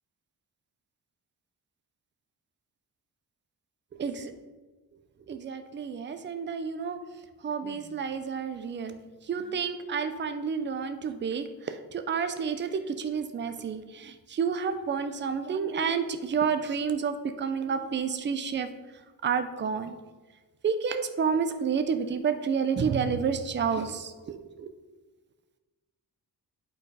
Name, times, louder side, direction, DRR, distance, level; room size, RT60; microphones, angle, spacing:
voice 1, 4.0-4.3 5.3-7.0 7.4-9.0 9.3-18.7 19.2-20.0 20.6-24.7, right 6 dB, 30° right, 10 dB, 0.4 m, -30 dB
8.6 x 4.6 x 4.8 m, 1.3 s
wide cardioid pair, 170°, 38 cm